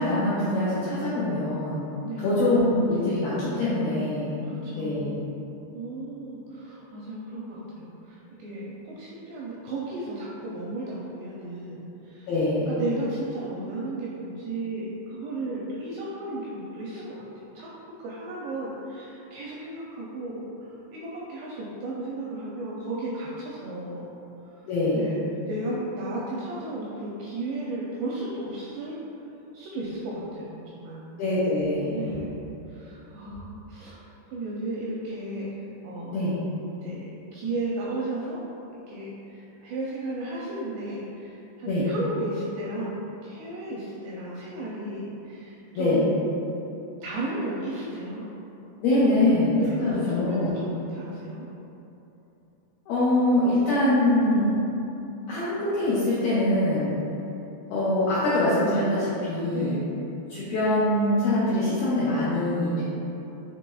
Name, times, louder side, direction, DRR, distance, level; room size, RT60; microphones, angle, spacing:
voice 1, 0.0-1.8 2.2-4.3 4.7-5.1 12.3-12.7 24.7-25.1 31.2-32.1 36.1-36.3 41.7-41.9 45.7-46.0 48.8-50.5 52.9-54.6 55.3-56.9 57.7-59.8 60.3-62.9, left 1 dB, 90° left, -11 dB, 2.1 m, -24 dB
voice 2, 4.4-5.1 5.7-12.3 12.7-17.7 18.0-24.1 24.4-25.2 25.5-29.0 29.5-31.0 31.9-32.3 32.7-35.5 35.8-36.3 36.8-38.4 38.9-42.9 43.2-46.2 47.0-48.3 48.9-51.5 56.3-56.5 59.5-59.8, right 2 dB, 85° right, -5 dB, 2.4 m, -34 dB
7.3 x 3.0 x 2.3 m, 3.0 s
omnidirectional pair, 5.2 m